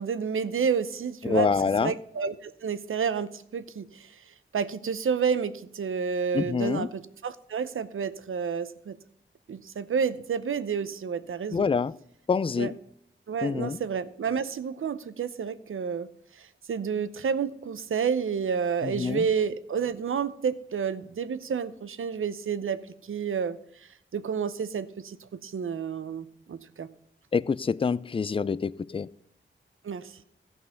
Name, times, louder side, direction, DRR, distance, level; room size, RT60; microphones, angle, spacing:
voice 1, 0.0-9.0 9.5-11.7 12.6-12.7 13.3-16.1 16.4-26.9 29.8-30.2, right 6 dB, 85° right, 13 dB, 0.7 m, -30 dB
voice 2, 1.2-1.9 6.3-6.9 11.5-11.9 12.3-12.7 13.4-13.8 18.8-19.2 27.3-29.1, left 5 dB, 25° left, 19 dB, 0.3 m, -26 dB
14.5 x 5.5 x 6.9 m, 0.73 s
wide cardioid pair, 85°, 21 cm